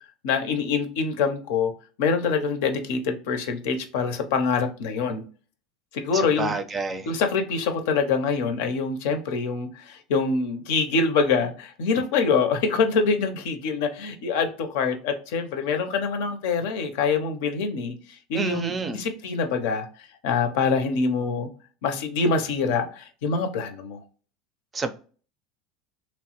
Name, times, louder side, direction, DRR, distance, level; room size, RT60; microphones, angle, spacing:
voice 1, 0.2-1.7 2.0-5.2 5.9-6.6 7.1-17.9 18.3-19.9 20.2-21.5 21.8-24.0, left 5 dB, 75° left, 0.6 m, -25 dB
voice 2, 6.1-7.1 18.3-19.0 24.7-24.9, right 4 dB, 25° right, 0.4 m, -29 dB
3.0 x 2.0 x 2.9 m
supercardioid pair, 110°, 0 cm